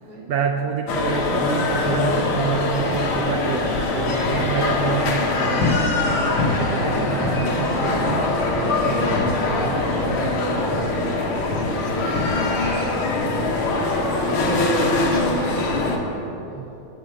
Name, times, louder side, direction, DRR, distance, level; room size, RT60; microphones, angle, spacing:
voice 1, 0.3-5.8 6.4-10.4 16.5-16.7, right 6 dB, 85° right, 4 dB, 0.8 m, -28 dB
sound 1, 0.9-16.0, left 2 dB, 85° left, 2.0 m, -22 dB
voice 2, 11.0-16.3, right 1 dB, 20° right, -4 dB, 1.8 m, -38 dB
8.7 x 6.8 x 8.1 m, 2.9 s
omnidirectional pair, 2.3 m